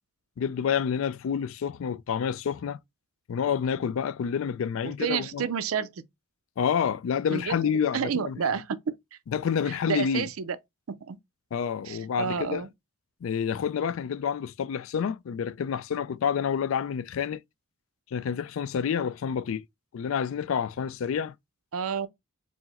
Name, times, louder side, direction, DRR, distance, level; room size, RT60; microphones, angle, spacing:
voice 1, 0.4-2.8 3.3-5.5 6.6-8.4 9.3-10.3 11.5-12.6 13.2-17.4 18.1-19.6 19.9-21.3, left 7 dB, 65° left, 0.3 m, -28 dB
voice 2, 4.8-5.9 7.3-8.8 9.9-10.6 10.9-11.2 11.9-12.7 21.7-22.1, right 7 dB, 80° right, 0.5 m, -30 dB
4.5 x 2.1 x 4.1 m
head